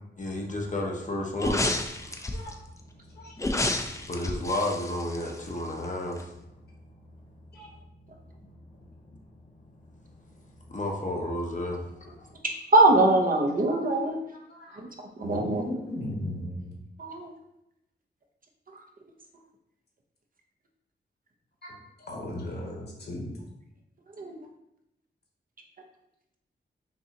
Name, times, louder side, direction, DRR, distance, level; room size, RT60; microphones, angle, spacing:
voice 1, 0.2-2.5 3.7-6.3 8.3-8.5 9.1-9.2 10.7-12.3, left 1 dB, 40° left, 1 dB, 0.8 m, -32 dB
sound 1, 1.4-2.5 3.4-5.8 6.2-6.3, left 2 dB, 15° left, 0.5 m, -30 dB
voice 2, 12.7-14.2 14.8-14.9 15.2-15.8 17.0-17.3 24.2-24.4, right 2 dB, 50° right, 2 dB, 0.8 m, -22 dB
voice 3, 14.5-14.8 15.2-16.6 21.6-21.7 22.1-23.3, left 1 dB, 60° left, -2 dB, 1.4 m, -36 dB
5.4 x 2.7 x 2.9 m, 0.85 s
cardioid pair, 60°, 19 cm